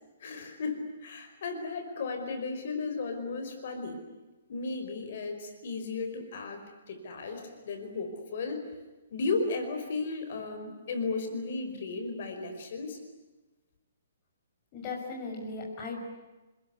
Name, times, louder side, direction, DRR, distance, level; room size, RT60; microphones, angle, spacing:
voice 1, 0.2-4.0 4.5-8.6 9.1-13.0, left 3 dB, 40° left, 6 dB, 5.1 m, -35 dB
voice 2, 14.7-16.0, left 3 dB, 20° left, 0 dB, 5.9 m, -37 dB
28.5 x 21.0 x 9.6 m, 1.1 s
hypercardioid pair, 180°, 0 cm